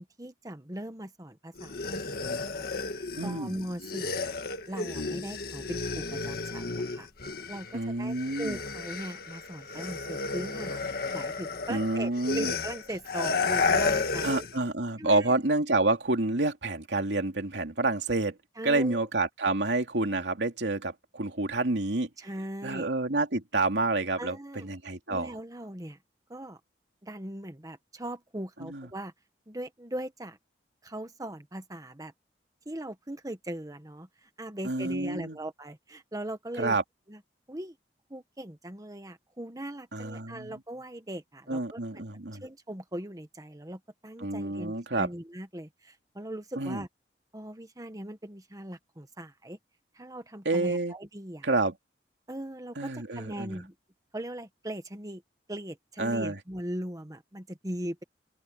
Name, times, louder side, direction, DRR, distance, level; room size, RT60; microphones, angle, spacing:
voice 1, 0.0-4.4 4.7-7.1 7.5-14.5 15.0-15.3 18.6-19.1 22.2-22.9 24.2-24.7 25.1-26.0 26.3-26.6 27.0-29.1 29.5-30.4 30.8-32.1 32.6-36.8 37.1-37.2 37.5-37.8 38.1-42.0 42.4-46.9 47.3-49.6 49.9-51.5 52.3-53.7 54.1-55.2 55.5-58.0, right 1 dB, 20° right, 1.4 m, -40 dB
sound 1, 1.6-7.8 8.1-14.6, left 4 dB, 60° left, 1.6 m, -32 dB
voice 2, 3.2-3.5 7.7-8.6 11.7-12.5 14.2-18.4 18.6-22.1 22.6-24.4 24.6-25.4 28.6-28.9 34.6-35.4 36.6-36.8 39.9-40.5 41.5-42.4 44.2-45.1 46.6-46.8 50.4-50.9 51.4-51.7 52.8-53.6 56.0-56.4, right 2 dB, 85° right, 2.7 m, -28 dB
open air
head